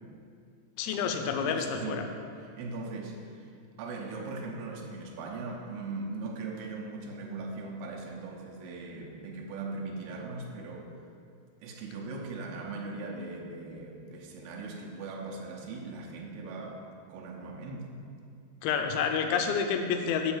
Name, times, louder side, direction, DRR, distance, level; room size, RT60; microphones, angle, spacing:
voice 1, 0.8-2.0 18.6-20.3, left 6 dB, 80° left, 5 dB, 2.5 m, -29 dB
voice 2, 1.4-2.1 2.4-10.9 11.6-16.8 17.1-17.9 18.6-18.7, right 3 dB, 90° right, -1 dB, 3.0 m, -39 dB
7.7 x 5.0 x 7.2 m, 2.3 s
omnidirectional pair, 4.6 m